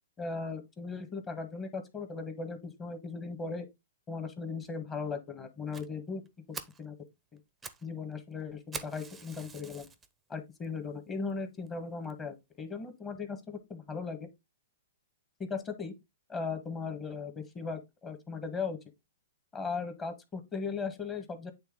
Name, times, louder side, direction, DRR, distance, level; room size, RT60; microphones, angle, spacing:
voice 1, 0.2-3.7 4.1-7.0 7.3-7.4 7.8-9.9 10.3-14.3 15.4-15.9 16.3-18.8 19.5-21.5, left 4 dB, 20° left, 1.3 m, -38 dB
Fire, 5.7-5.9 6.3-6.4 6.5-6.8 7.4-7.9 8.1-8.2 8.7-10.1 10.6-10.7 11.3-11.4 11.7-11.8 12.1-12.2, right 5 dB, 10° right, 0.7 m, -44 dB
8.6 x 3.4 x 3.6 m
hypercardioid pair, 140°, 0 cm